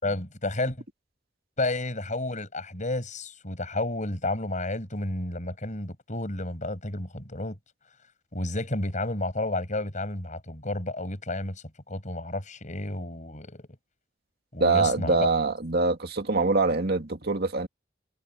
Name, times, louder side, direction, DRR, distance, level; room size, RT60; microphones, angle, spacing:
voice 1, 0.0-0.8 1.6-7.6 8.3-13.6 14.5-15.3, left 2 dB, 40° left, 6.0 m, -31 dB
voice 2, 14.6-17.7, right 3 dB, 55° right, 2.4 m, -24 dB
head